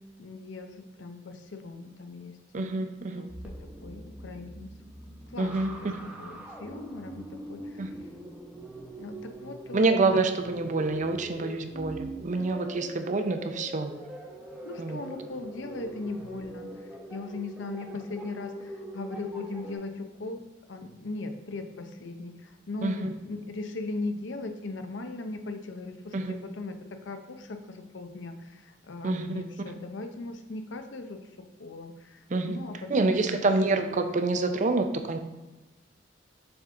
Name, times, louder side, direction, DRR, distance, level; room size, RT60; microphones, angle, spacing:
voice 1, 0.2-3.3 3.6-4.7 5.3-5.9 6.2-7.9 9.0-10.2 14.6-20.4 20.7-31.2 31.6-33.4 33.7-33.8, left 3 dB, 80° left, 6 dB, 0.6 m, -39 dB
voice 2, 2.5-3.3 5.4-5.7 7.8-7.9 9.7-13.9 14.8-15.0 22.8-23.1 26.1-26.4 29.0-29.7 32.3-32.6 32.9-35.2, right 3 dB, 40° right, 7 dB, 0.5 m, -27 dB
sound 1, 3.3-19.8, right 1 dB, 10° right, 0.8 m, -42 dB
7.0 x 3.6 x 3.7 m, 1.2 s
head